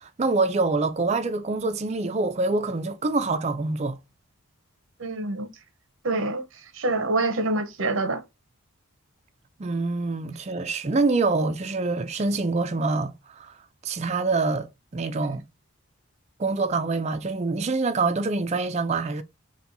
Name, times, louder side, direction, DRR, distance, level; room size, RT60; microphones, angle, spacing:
voice 1, 0.0-4.0 9.6-13.5 13.8-15.5 16.4-19.2, right 3 dB, 30° right, 0.4 m, -25 dB
voice 2, 5.0-5.5 6.0-6.4 6.7-8.2, right 2 dB, 65° right, 0.8 m, -26 dB
4.3 x 2.2 x 3.9 m
head